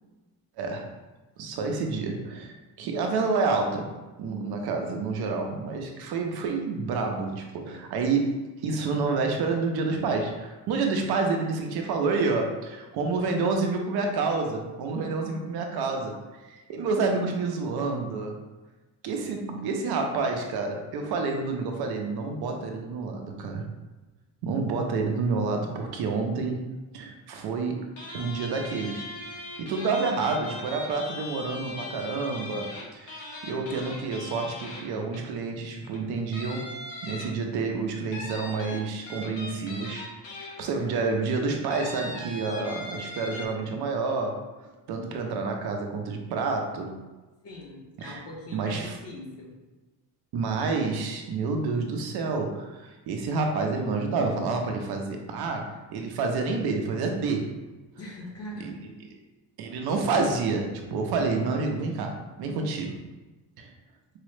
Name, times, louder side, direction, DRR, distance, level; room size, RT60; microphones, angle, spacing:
voice 1, 0.6-0.9 1.4-3.9 4.2-8.3 8.6-16.1 16.5-18.4 19.0-23.7 24.4-26.6 26.9-27.9 28.1-36.7 37.0-40.1 40.6-44.4 44.9-47.0 48.0-48.2 48.5-49.0 50.3-57.4 58.6-58.7 59.6-62.9 63.6-63.7, right 4 dB, 65° right, 3 dB, 0.6 m, -29 dB
sound 1, 28.0-35.4 35.8-36.0 36.3-37.6 38.1-40.9 41.7-43.5, left 2 dB, 85° left, 1.1 m, -39 dB
voice 2, 47.4-49.6 58.0-58.7, left 1 dB, 35° left, -2 dB, 0.7 m, -41 dB
4.6 x 2.0 x 3.1 m, 1.2 s
cardioid pair, 180°, 42 cm